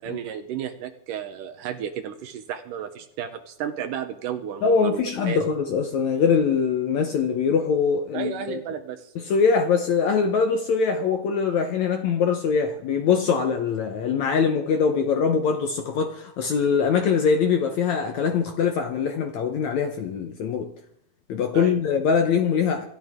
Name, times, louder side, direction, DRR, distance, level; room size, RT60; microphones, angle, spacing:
voice 1, 0.0-5.4 8.1-9.1 21.5-21.8, right 9 dB, 70° right, 2.2 m, -33 dB
voice 2, 4.6-8.6 9.2-20.7 21.3-22.8, left 6 dB, 65° left, 1.9 m, -23 dB
25.5 x 13.0 x 3.7 m
omnidirectional pair, 4.3 m